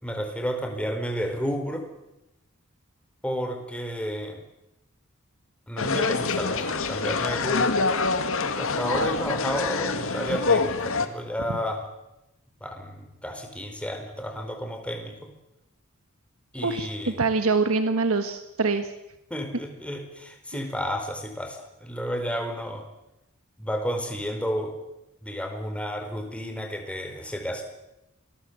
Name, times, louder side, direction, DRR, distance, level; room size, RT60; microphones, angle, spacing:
voice 1, 0.0-1.8 3.2-4.4 5.7-7.8 8.4-11.9 12.6-15.3 16.5-17.2 19.3-22.9 23.6-24.7 25.2-27.6, equal, 5° left, 4 dB, 4.3 m, -31 dB
sound 1, 5.8-11.1, left 4 dB, 65° left, 2.1 m, -25 dB
voice 2, 16.6-18.9, right 4 dB, 70° right, 8 dB, 1.5 m, -24 dB
27.5 x 20.0 x 8.1 m, 0.91 s
head